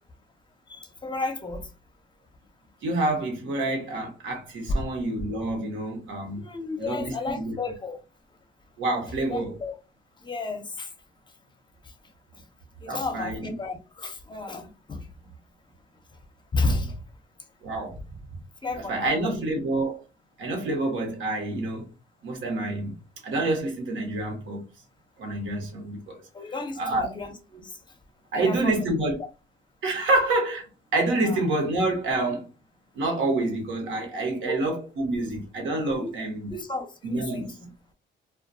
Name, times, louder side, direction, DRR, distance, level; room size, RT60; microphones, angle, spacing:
voice 1, 0.7-1.7 4.7-4.8 6.4-8.0 9.3-9.8 10.2-10.9 12.8-15.1 16.5-17.0 18.6-19.5 26.3-27.8 28.3-28.9 31.2-31.4 34.4-34.7 36.0-36.1 36.5-37.7, left 2 dB, 25° left, 0.6 m, -32 dB
voice 2, 2.8-6.4 6.8-7.6 8.8-9.5 12.9-13.4 17.6-18.0 18.9-20.0 20.4-21.9 22.2-23.0 23.2-24.6 25.2-26.2 26.8-27.1 28.3-29.1 29.8-32.5 32.9-36.5 37.0-37.5, right 2 dB, 80° right, 1.0 m, -27 dB
2.3 x 2.2 x 2.5 m
cardioid pair, 90°, 20 cm